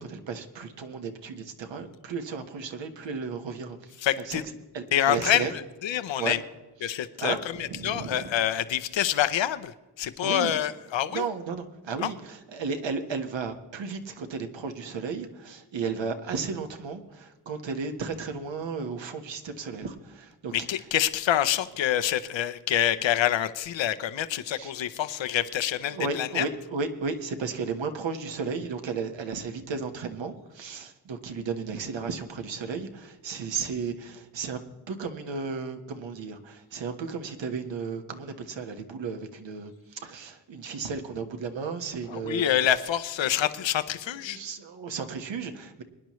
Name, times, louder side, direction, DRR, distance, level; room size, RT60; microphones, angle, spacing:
voice 1, 0.0-4.4 4.7-5.5 6.2-6.3 6.8-7.4 7.7-8.3 10.2-10.5 11.1-20.5 24.5-24.7 25.9-34.6 34.9-42.5 44.2-45.8, right 5 dB, 80° right, 6 dB, 1.5 m, -34 dB
voice 2, 4.0-4.4 4.9-6.4 6.8-11.3 12.0-12.1 20.5-26.5 42.1-44.4, left 11 dB, 85° left, 12 dB, 0.8 m, -27 dB
23.0 x 10.5 x 3.1 m, 1.1 s
wide cardioid pair, 150°, 44 cm